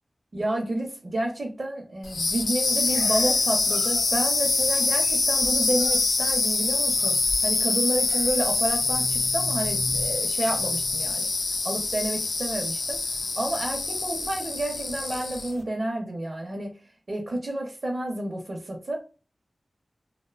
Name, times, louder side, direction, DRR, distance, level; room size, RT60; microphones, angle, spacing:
voice 1, 0.3-11.3 11.6-13.0 13.4-16.8 17.1-19.0, right 1 dB, 55° right, 0.6 m, -30 dB
sound 1, 2.0-15.6, left 3 dB, 85° left, 0.4 m, -25 dB
2.6 x 2.1 x 2.3 m
wide cardioid pair, 90°, 0 cm